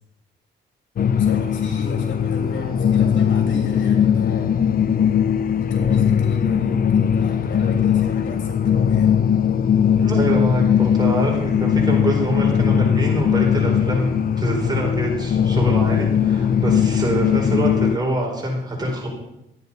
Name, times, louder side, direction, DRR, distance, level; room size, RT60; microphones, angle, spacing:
voice 1, 1.0-4.6 5.6-9.1, left 3 dB, 70° left, 3 dB, 3.0 m, -34 dB
sound 1, 1.0-18.0, left 8 dB, 45° left, 0.7 m, -19 dB
voice 2, 9.9-19.1, right 1 dB, 20° right, -1 dB, 4.5 m, -24 dB
12.5 x 9.6 x 5.5 m, 0.88 s
cardioid pair, 90°, 20 cm